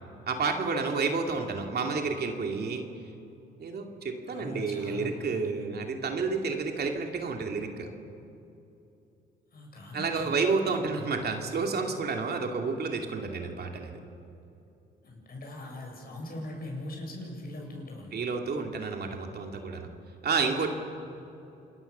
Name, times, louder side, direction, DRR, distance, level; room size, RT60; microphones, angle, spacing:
voice 1, 0.3-2.8 3.6-7.9 9.9-14.0 18.1-19.9 20.2-20.7, right 4 dB, 55° right, 3 dB, 2.7 m, -30 dB
voice 2, 4.3-5.6 9.5-10.5 10.8-11.0 15.0-18.2, left 1 dB, 50° left, 0 dB, 7.6 m, -41 dB
28.0 x 20.5 x 6.9 m, 2.8 s
cardioid pair, 90°, 20 cm